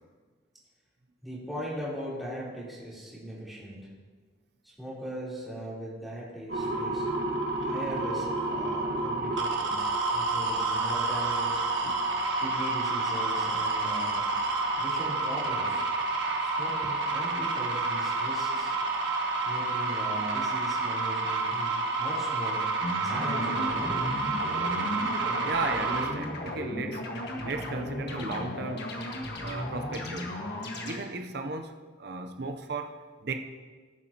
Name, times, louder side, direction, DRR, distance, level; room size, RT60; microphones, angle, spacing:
voice 1, 1.2-3.8 4.6-7.0 7.6-11.6 12.3-14.3 14.8-15.8 16.4-18.7 19.4-22.7 23.0-24.1, equal, ahead, -8 dB, 3.7 m, -39 dB
sound 1, 6.5-26.1, right 3 dB, 80° right, 1.5 m, -29 dB
sound 2, 22.8-31.0, left 1 dB, 60° left, 1.7 m, -35 dB
voice 2, 25.4-27.1 27.4-28.9 29.4-30.4 30.8-33.4, right 3 dB, 60° right, 6 dB, 0.8 m, -35 dB
18.0 x 9.3 x 3.0 m, 1.4 s
head